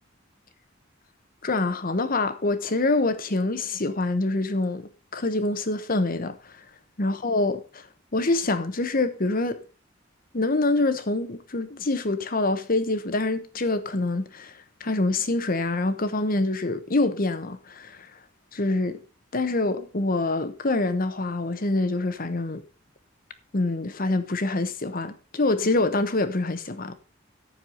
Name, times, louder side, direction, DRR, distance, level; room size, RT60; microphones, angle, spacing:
voice 1, 1.4-6.5 7.0-7.8 8.1-9.6 10.3-14.5 14.8-18.1 18.5-19.0 19.3-22.6 23.5-26.9, left 2 dB, 45° left, 1.1 m, -25 dB
14.0 x 4.7 x 5.4 m
head